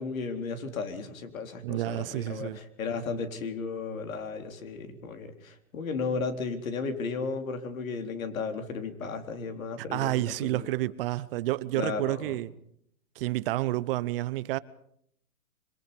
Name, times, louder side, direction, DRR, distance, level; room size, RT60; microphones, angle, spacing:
voice 1, 0.0-10.7 11.7-12.4, left 4 dB, 70° left, 4.1 m, -34 dB
voice 2, 1.6-2.6 9.9-12.5 13.2-14.6, right 17 dB, 40° right, 0.9 m, -30 dB
26.5 x 24.0 x 5.4 m
hypercardioid pair, 130°, 43 cm